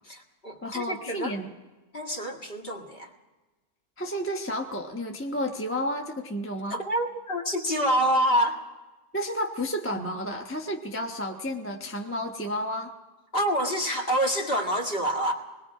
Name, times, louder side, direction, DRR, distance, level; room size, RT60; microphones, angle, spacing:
voice 1, 0.1-1.3 1.9-3.1 6.7-8.6 13.3-15.3, equal, 40° left, 3 dB, 2.2 m, -27 dB
voice 2, 0.6-1.5 4.0-6.8 9.1-12.9, equal, 10° left, 2 dB, 1.0 m, -31 dB
27.0 x 21.0 x 4.9 m, 1.2 s
omnidirectional pair, 1.6 m